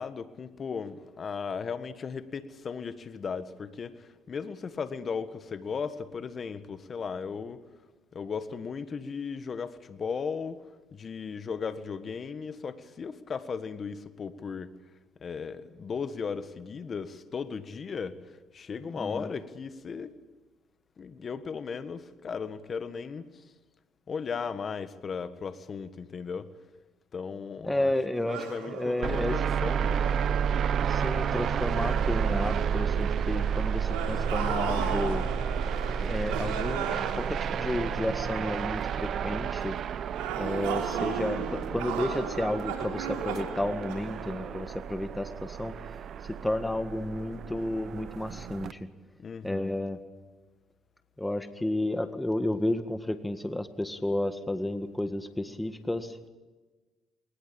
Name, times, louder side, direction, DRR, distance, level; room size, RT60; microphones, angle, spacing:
voice 1, 0.0-7.6 8.1-10.7 10.9-14.7 15.2-20.1 21.0-23.5 24.1-26.5 27.1-27.9 28.3-30.1 49.2-49.8, left 5 dB, 45° left, 1.6 m, -36 dB
voice 2, 19.0-19.3 27.7-29.4 30.9-35.2 36.0-39.8 40.4-45.7 46.2-48.9 49.4-50.0 51.2-56.3, left 1 dB, 10° left, 1.7 m, -32 dB
sound 1, 28.3-31.4 31.8-32.1 33.9-38.5 40.1-44.7, right 6 dB, 90° right, 3.3 m, -36 dB
sound 2, 29.0-48.7, right 7 dB, 60° right, 1.1 m, -31 dB
20.5 x 20.0 x 8.7 m
supercardioid pair, 70°, 0 cm